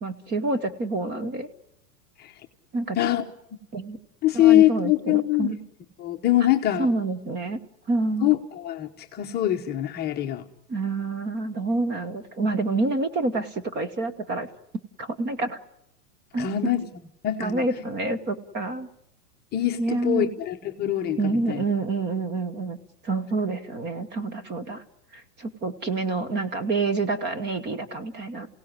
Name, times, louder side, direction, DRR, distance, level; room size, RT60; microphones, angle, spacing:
voice 1, 0.0-1.5 2.7-3.0 3.7-4.0 4.3-5.6 6.8-7.6 7.9-8.3 10.7-14.5 15.0-15.6 16.3-16.7 17.4-18.9 19.8-20.3 21.2-22.8 23.0-24.8 25.1-28.5, right 3 dB, 20° right, 13 dB, 1.2 m, -27 dB
voice 2, 4.2-5.6 6.0-6.9 8.2-10.4 16.4-16.8 17.2-17.8 19.5-21.6, left 13 dB, 20° left, 2 dB, 1.0 m, -23 dB
28.0 x 17.0 x 9.7 m, 0.83 s
hypercardioid pair, 145°, 48 cm